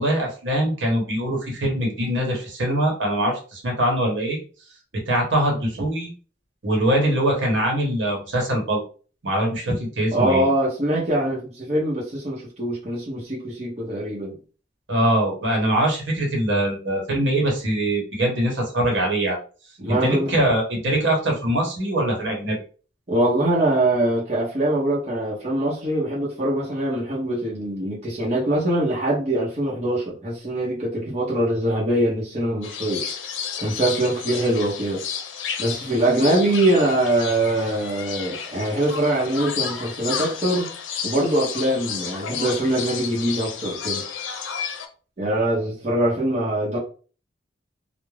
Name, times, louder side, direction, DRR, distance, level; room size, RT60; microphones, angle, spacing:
voice 1, 0.0-4.4 5.1-6.1 6.6-8.8 9.2-10.5 14.9-19.4 19.9-22.6, right 1 dB, 75° right, 1.0 m, -22 dB
voice 2, 10.1-14.4 19.8-20.3 23.1-33.0 33.6-35.0 35.6-40.7 41.0-44.0 45.2-46.8, right 1 dB, 35° right, 0.7 m, -23 dB
sound 1, 32.6-44.9, left 7 dB, 90° left, 0.5 m, -32 dB
2.3 x 2.0 x 3.1 m
head